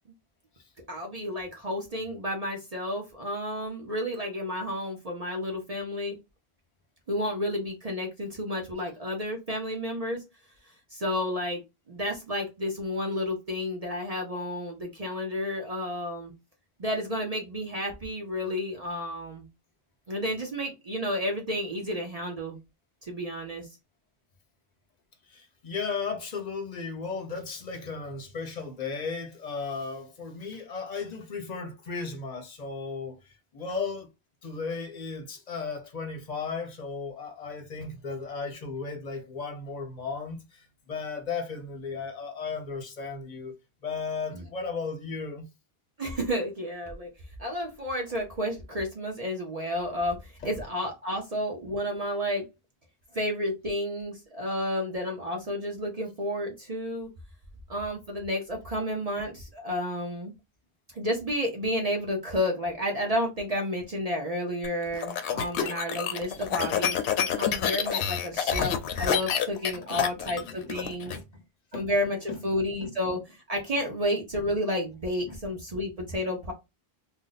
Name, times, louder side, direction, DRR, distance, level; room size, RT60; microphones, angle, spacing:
voice 1, 0.9-6.2 7.1-10.2 10.9-11.6 11.9-16.3 16.8-19.5 20.1-22.6 23.0-23.7 44.3-44.5 46.0-47.1 47.4-52.5 53.1-57.1 57.7-60.3 60.9-67.0 67.3-71.1 71.7-76.5, equal, 40° right, 0.7 m, -31 dB
voice 2, 25.3-34.1 34.4-43.6 43.8-45.5 50.4-50.5 67.9-68.0 69.7-70.7 71.1-71.4 71.7-71.9 72.3-72.4 72.8-72.9 75.3-75.4, left 4 dB, 45° left, 0.7 m, -35 dB
sound 1, 64.6-71.2, left 8 dB, 90° left, 0.8 m, -28 dB
2.6 x 2.1 x 3.9 m
omnidirectional pair, 1.1 m